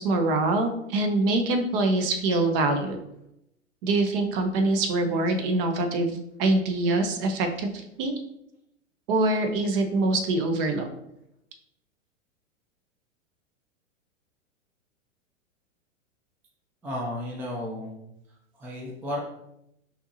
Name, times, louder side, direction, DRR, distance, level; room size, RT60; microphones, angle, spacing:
voice 1, 0.0-3.0 3.8-8.1 9.1-10.9, right 2 dB, 45° right, 6 dB, 0.8 m, -24 dB
voice 2, 16.8-17.9 18.5-19.2, left 1 dB, 5° right, -2 dB, 0.4 m, -33 dB
5.5 x 2.8 x 2.7 m, 0.81 s
hypercardioid pair, 120°, 39 cm